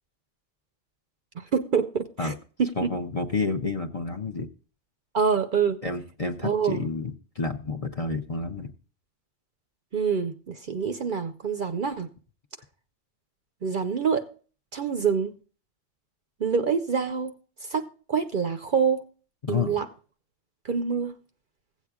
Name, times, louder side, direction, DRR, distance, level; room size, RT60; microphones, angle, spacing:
voice 1, 1.4-2.9 5.1-5.8 6.4-6.9 9.9-12.1 13.6-14.3 14.7-15.3 16.4-17.3 17.6-19.0 19.5-19.9 20.6-21.1, right 6 dB, 50° right, 0.7 m, -26 dB
voice 2, 2.8-4.5 5.8-8.7 19.4-19.7, left 4 dB, 35° left, 0.6 m, -30 dB
16.0 x 8.2 x 2.3 m
omnidirectional pair, 1.3 m